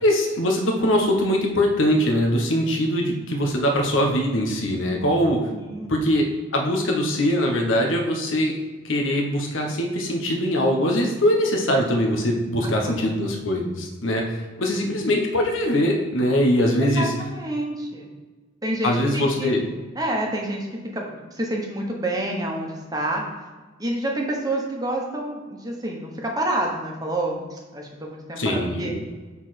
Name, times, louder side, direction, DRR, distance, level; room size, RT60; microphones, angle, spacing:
voice 1, 0.0-5.4 5.9-6.3 6.5-8.6 8.8-17.1 18.8-19.6 28.4-29.0, equal, 85° left, 1 dB, 1.1 m, -22 dB
voice 2, 5.5-5.9 12.6-13.2 14.7-15.0 16.8-18.1 18.6-19.5 20.0-23.2 23.8-28.9, right 1 dB, 20° right, 0 dB, 1.1 m, -28 dB
7.1 x 4.2 x 4.3 m, 1.3 s
head